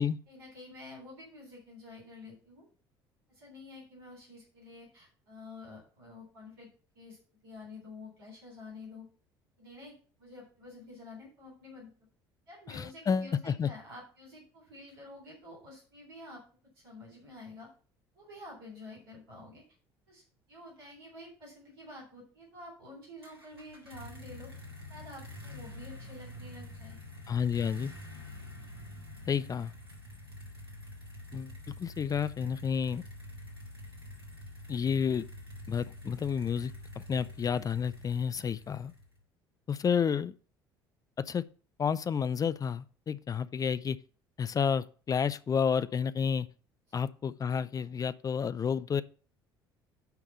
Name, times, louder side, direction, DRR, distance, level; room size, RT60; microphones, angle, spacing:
voice 1, 0.0-2.7 3.3-6.7 6.9-7.2 7.4-9.1 9.6-11.9 12.5-16.4 16.8-17.7 18.1-19.6 20.1-20.2 20.5-24.5 24.9-27.0 46.9-47.0, left 2 dB, 75° right, 3.6 m, -49 dB
voice 2, 12.7-13.7 27.3-27.9 29.3-29.7 31.3-31.5 31.8-33.0 34.7-35.2 35.7-38.9 39.7-40.3 41.2-41.4 41.8-44.0 44.4-46.5 46.9-49.0, left 7 dB, 30° left, 0.5 m, -30 dB
sound 1, 23.2-39.2, left 1 dB, 90° right, 1.9 m, -47 dB
10.5 x 3.6 x 7.0 m
figure-of-eight pair, 55°, 13 cm